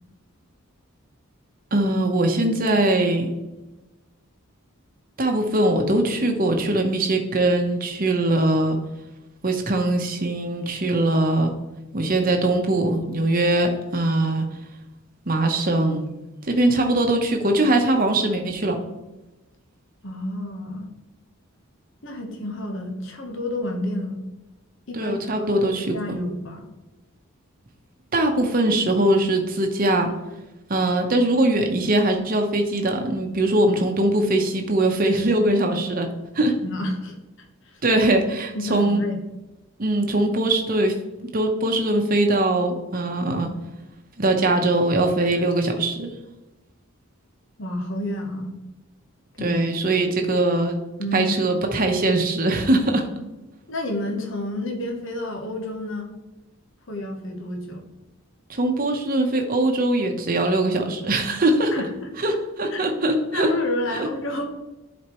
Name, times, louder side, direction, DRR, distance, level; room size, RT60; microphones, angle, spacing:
voice 1, 1.7-3.3 5.2-8.8 9.4-11.5 11.9-14.5 15.3-16.0 16.5-18.8 24.9-26.2 28.1-30.1 30.7-36.1 36.3-36.5 37.8-39.0 39.8-40.9 41.3-43.5 44.2-46.1 49.4-50.8 51.1-53.1 58.5-61.7 62.2-63.5 64.0-64.1, right 1 dB, 40° right, 4 dB, 0.9 m, -21 dB
voice 2, 20.0-20.9 22.0-24.2 24.9-26.7 36.6-37.8 38.5-39.2 47.6-48.5 49.4-49.6 51.0-51.3 53.7-56.1 56.9-57.8 61.7-62.1 62.7-62.8 63.3-64.4, left 1 dB, 55° left, 2 dB, 1.0 m, -30 dB
10.5 x 4.3 x 3.0 m, 1.0 s
head